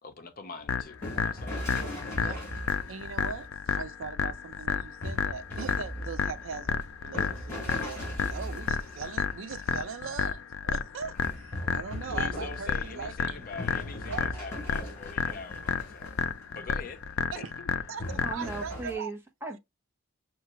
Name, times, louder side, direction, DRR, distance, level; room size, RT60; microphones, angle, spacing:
voice 1, 0.0-1.5 12.1-16.1 16.5-17.0 17.3-17.7, left 4 dB, 45° left, 0.6 m, -43 dB
sound 1, 0.6-3.5 5.0-9.7 11.1-16.4 16.8-17.1 18.0-19.0, equal, 10° left, 3.1 m, -40 dB
sound 2, 0.7-18.7, left 6 dB, 85° left, 0.4 m, -32 dB
voice 2, 2.9-8.0 8.3-13.4 14.1-14.5 17.3-17.5 17.9-19.1, right 6 dB, 75° right, 0.4 m, -40 dB
voice 3, 18.2-19.6, right 3 dB, 10° right, 0.9 m, -37 dB
5.6 x 2.4 x 3.0 m
head